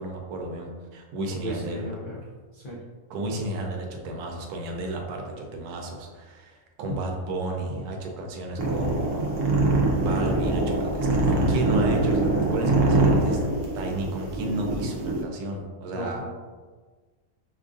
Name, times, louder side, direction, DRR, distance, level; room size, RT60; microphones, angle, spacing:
voice 1, 0.0-1.8 3.1-9.1 9.9-13.4 13.7-16.2, right 1 dB, 90° right, 2 dB, 1.2 m, -32 dB
voice 2, 1.4-2.2 2.5-2.8 15.9-16.3, equal, 75° left, -6 dB, 0.4 m, -34 dB
sound 1, 8.6-15.2, right 2 dB, 65° right, 0.9 m, -23 dB
4.8 x 2.5 x 2.5 m, 1.4 s
omnidirectional pair, 1.6 m